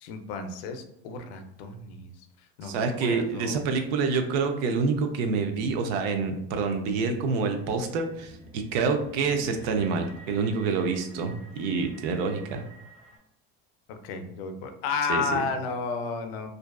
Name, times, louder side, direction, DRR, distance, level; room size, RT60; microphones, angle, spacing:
voice 1, 0.0-2.1 2.6-3.6 13.9-16.5, left 4 dB, 80° left, 7 dB, 0.5 m, -32 dB
voice 2, 2.6-12.6 15.1-15.4, right 4 dB, 85° right, 6 dB, 0.5 m, -27 dB
sound 1, 7.5-13.2, equal, 5° left, 0.8 m, -48 dB
2.5 x 2.3 x 2.2 m, 0.78 s
cardioid pair, 150°, 30 cm